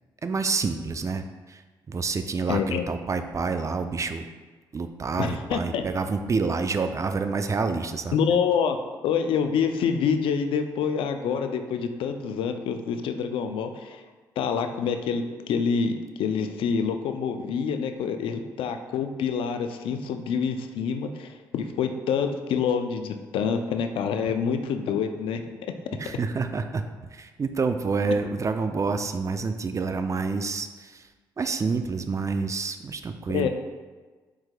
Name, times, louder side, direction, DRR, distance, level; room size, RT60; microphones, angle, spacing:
voice 1, 0.2-4.3 4.7-8.2 26.0-31.1 31.4-33.5, right 4 dB, 35° right, 8 dB, 0.4 m, -28 dB
voice 2, 2.5-2.8 5.2-5.8 8.1-8.8 9.0-14.0 14.4-25.7 33.3-33.5, left 6 dB, 75° left, 7 dB, 0.4 m, -27 dB
4.6 x 4.5 x 2.2 m, 1.3 s
supercardioid pair, 50°, 9 cm